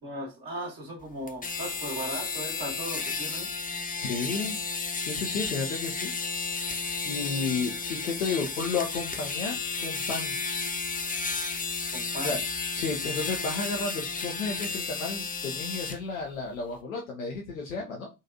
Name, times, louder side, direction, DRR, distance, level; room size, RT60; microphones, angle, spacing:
voice 1, 0.0-3.5 11.9-12.3, right 1 dB, 55° right, -3 dB, 1.7 m, -37 dB
sound 1, 1.3-16.0, left 4 dB, 20° left, 0.7 m, -33 dB
voice 2, 4.0-4.6 5.0-6.2 7.0-10.3 12.2-12.4 12.7-18.1, left 4 dB, 90° left, 0 dB, 0.5 m, -32 dB
3.8 x 2.3 x 2.6 m, 0.27 s
figure-of-eight pair, 45°, 39 cm